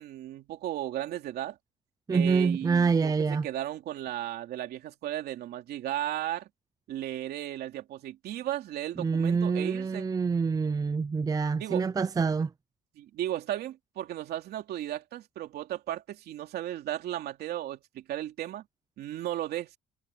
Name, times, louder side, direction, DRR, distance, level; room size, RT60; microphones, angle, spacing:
voice 1, 0.0-1.6 2.1-6.5 6.9-10.1 11.6-11.8 13.0-18.6 19.0-19.7, right 13 dB, 70° right, 3.1 m, -35 dB
voice 2, 2.1-3.5 9.0-12.5, right 5 dB, 20° right, 0.7 m, -26 dB
cardioid pair, 110°, 17 cm